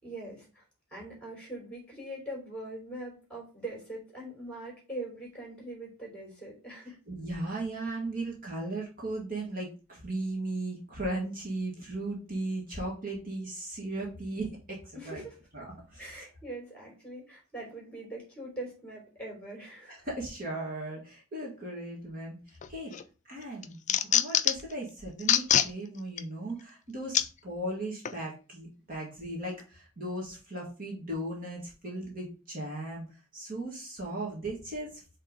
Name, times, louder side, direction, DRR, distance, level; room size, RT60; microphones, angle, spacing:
voice 1, 0.0-0.6 0.9-7.0 14.9-15.4 16.0-20.0, right 1 dB, 5° left, -2 dB, 3.3 m, -42 dB
voice 2, 7.1-15.2 15.5-16.2 19.9-22.9 23.3-33.1 33.3-35.2, right 2 dB, 40° right, -2 dB, 1.8 m, -37 dB
sound 1, 22.6-23.0 23.4-24.7 25.2-25.7 26.2-26.3 27.1-27.3 28.0-28.2, left 10 dB, 35° left, 0.4 m, -24 dB
5.6 x 3.6 x 5.1 m, 0.34 s
head